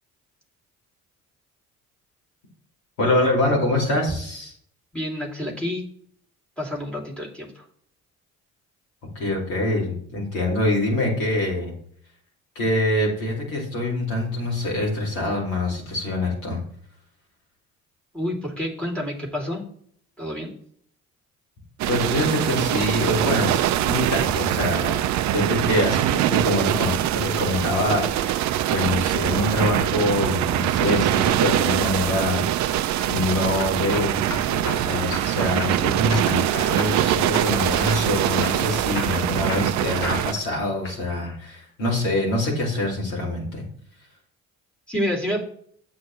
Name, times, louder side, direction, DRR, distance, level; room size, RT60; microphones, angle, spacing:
voice 1, 3.0-4.5 9.1-11.7 12.5-16.6 21.9-25.0 25.3-43.6, left 1 dB, 75° left, -2 dB, 2.6 m, -25 dB
voice 2, 4.9-5.8 6.6-7.6 18.1-19.6 20.2-20.5 44.9-45.4, equal, ahead, -1 dB, 2.8 m, -28 dB
sound 1, 21.8-40.3, right 12 dB, 45° right, 0.5 m, -23 dB
sound 2, 32.7-33.1 33.6-34.8 35.1-35.7 36.1-36.5 36.8-37.6 37.9-38.1 38.4-40.4 40.8-41.4, left 2 dB, 30° left, 1.8 m, -34 dB
8.3 x 7.4 x 3.1 m, 0.64 s
figure-of-eight pair, 45°, 42 cm